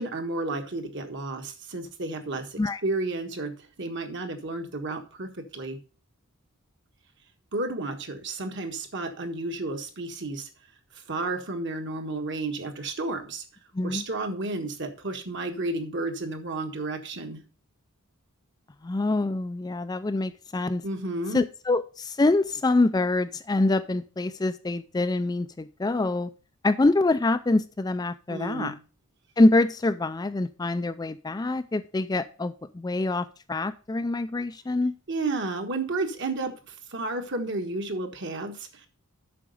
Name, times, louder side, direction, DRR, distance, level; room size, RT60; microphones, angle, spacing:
voice 1, 0.0-5.8 7.5-10.5 11.1-13.4 13.8-17.4 20.8-21.4 28.3-28.7 35.1-38.9, right 2 dB, 55° right, 5 dB, 1.5 m, -32 dB
voice 2, 18.8-20.8 21.3-26.3 26.6-28.7 29.4-34.9, left 2 dB, 15° left, 11 dB, 0.3 m, -25 dB
8.5 x 6.0 x 5.3 m, 0.36 s
head